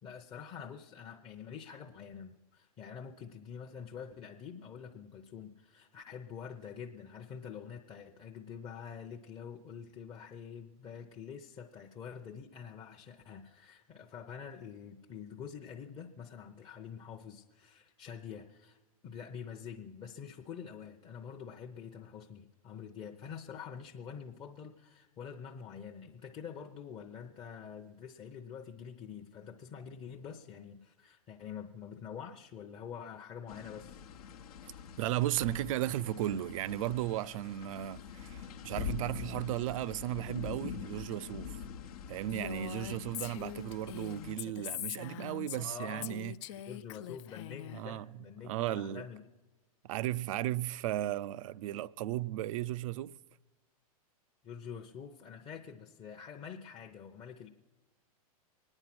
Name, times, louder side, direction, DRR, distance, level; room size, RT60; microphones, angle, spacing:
voice 1, 0.0-18.8 19.0-34.0 45.5-46.1 46.6-49.3 54.4-57.5, left 7 dB, 25° left, 0.8 m, -46 dB
sound 1, 33.5-44.3, left 7 dB, 75° left, 0.9 m, -44 dB
voice 2, 35.0-41.6 42.1-46.3 47.7-48.1 48.4-49.0 49.8-53.2, right 13 dB, 60° right, 0.4 m, -35 dB
Female speech woman speaking, 42.3-45.7 46.0-47.8, left 13 dB, 50° left, 0.4 m, -42 dB
23.5 x 9.9 x 6.0 m
hypercardioid pair, 125°, 19 cm